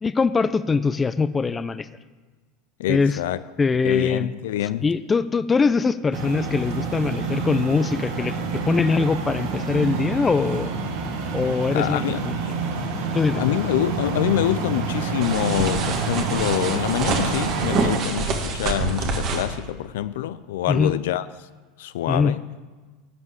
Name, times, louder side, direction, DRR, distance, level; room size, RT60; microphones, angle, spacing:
voice 1, 0.0-1.9 2.9-3.2 3.6-4.3 4.8-10.7 11.3-12.3 13.1-13.6 20.7-21.0 22.1-22.3, left 4 dB, 20° left, 0.5 m, -22 dB
voice 2, 2.8-3.4 3.8-4.9 11.7-12.2 13.3-21.3 21.8-22.4, left 12 dB, 75° left, 0.4 m, -26 dB
sound 1, 6.1-18.0, right 4 dB, 70° right, 1.6 m, -28 dB
sound 2, 15.2-19.5, right 4 dB, 50° right, 1.7 m, -26 dB
12.0 x 5.6 x 8.2 m
hypercardioid pair, 95°, 0 cm